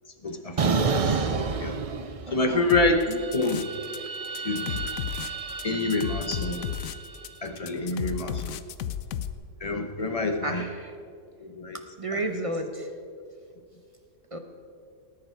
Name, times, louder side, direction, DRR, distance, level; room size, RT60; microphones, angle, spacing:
voice 1, 0.2-0.8 1.6-1.8 2.3-3.0 3.3-3.6 4.4-4.9 5.6-6.6 7.4-8.6 9.6-10.6 11.4-11.8 12.1-12.2, left 2 dB, 30° left, 6 dB, 0.8 m, -27 dB
sound 1, 0.6-2.5 2.9-7.2, right 4 dB, 60° right, 0.3 m, -30 dB
voice 2, 2.2-2.7 3.1-3.2 10.4-11.0 12.0-12.9 14.3-14.4, right 1 dB, 30° right, 5 dB, 0.7 m, -32 dB
sound 2, 2.7-4.0 4.2-9.3, left 10 dB, 75° left, 1.0 m, -33 dB
18.5 x 9.8 x 4.6 m, 2.3 s
omnidirectional pair, 1.5 m